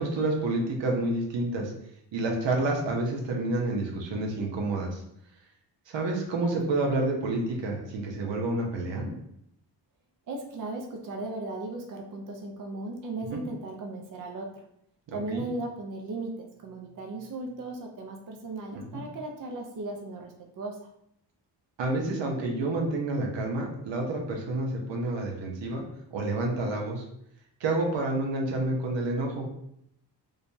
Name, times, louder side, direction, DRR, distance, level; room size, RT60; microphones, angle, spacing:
voice 1, 0.0-1.7 2.1-5.0 5.9-9.1 13.3-13.4 15.1-15.4 18.7-19.0 21.8-25.8 26.1-27.0 27.6-29.5, right 2 dB, 85° right, 0 dB, 0.9 m, -29 dB
voice 2, 10.3-14.6 15.1-20.8, right 2 dB, 50° right, 2 dB, 0.6 m, -37 dB
4.9 x 2.3 x 2.7 m, 0.75 s
cardioid pair, 100°, 43 cm